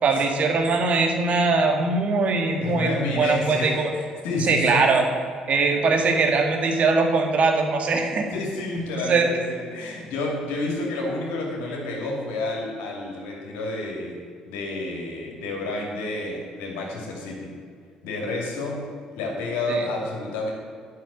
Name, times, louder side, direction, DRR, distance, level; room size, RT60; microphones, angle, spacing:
voice 1, 0.0-3.9 4.4-5.1 5.5-8.3 8.7-9.3 19.7-19.8, right 4 dB, 50° right, 3 dB, 2.0 m, -21 dB
voice 2, 2.6-4.8 8.3-14.2 14.4-17.5 18.0-18.9 19.1-20.5, left 2 dB, 80° left, -1 dB, 2.7 m, -30 dB
9.4 x 6.5 x 8.5 m, 2.1 s
hypercardioid pair, 60°, 3 cm